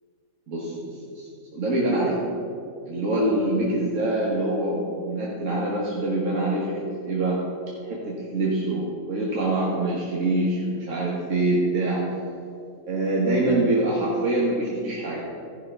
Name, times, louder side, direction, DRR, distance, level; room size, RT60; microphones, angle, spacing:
voice 1, 0.5-1.3 1.5-2.2 2.9-7.4 7.9-12.0 12.8-15.2, right 2 dB, 70° right, -4 dB, 1.7 m, -25 dB
14.5 x 5.8 x 5.6 m, 2.4 s
omnidirectional pair, 1.4 m